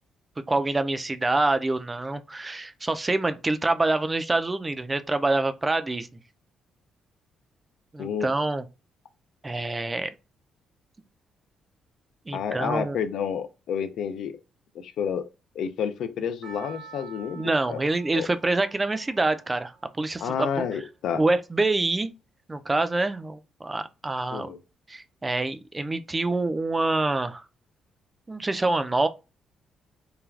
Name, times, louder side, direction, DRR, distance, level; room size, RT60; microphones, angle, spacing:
voice 1, 0.5-6.1 7.9-8.6 9.4-10.1 12.3-13.0 17.3-19.7 20.0-20.5 21.1-22.1 22.5-24.5 24.9-27.4 28.3-29.1, right 2 dB, 20° right, 0.3 m, -26 dB
voice 2, 12.3-14.4 14.7-15.3 15.6-17.8 18.2-18.3 20.2-21.2 24.3-24.6, left 7 dB, 75° left, 0.3 m, -30 dB
Percussion, 16.4-20.8 21.4-21.5, right 5 dB, 75° right, 1.0 m, -48 dB
3.2 x 2.3 x 2.3 m
cardioid pair, 90°, 0 cm